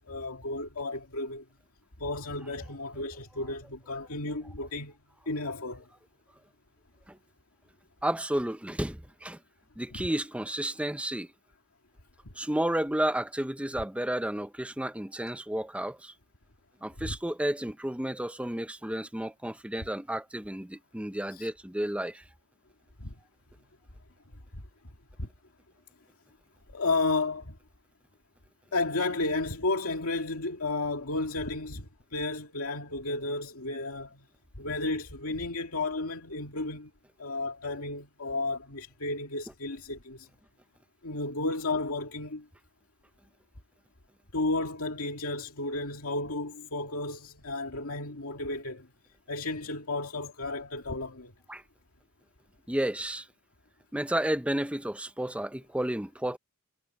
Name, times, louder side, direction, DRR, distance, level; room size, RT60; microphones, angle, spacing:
voice 1, 0.0-1.4 2.0-4.9 5.3-5.8 9.9-10.0 12.2-12.3 17.0-17.2 21.3-21.5 23.0-23.2 24.5-24.6 25.2-25.3 26.7-27.6 28.7-34.2 34.6-36.9 37.2-40.3 41.0-42.5 44.3-48.9 49.3-51.3, left 2 dB, 80° left, 2.3 m, -33 dB
voice 2, 8.0-9.4 9.8-11.3 12.4-16.1 16.8-22.2 51.5-51.6 52.7-53.2 53.9-56.4, right 1 dB, 5° right, 0.7 m, -32 dB
head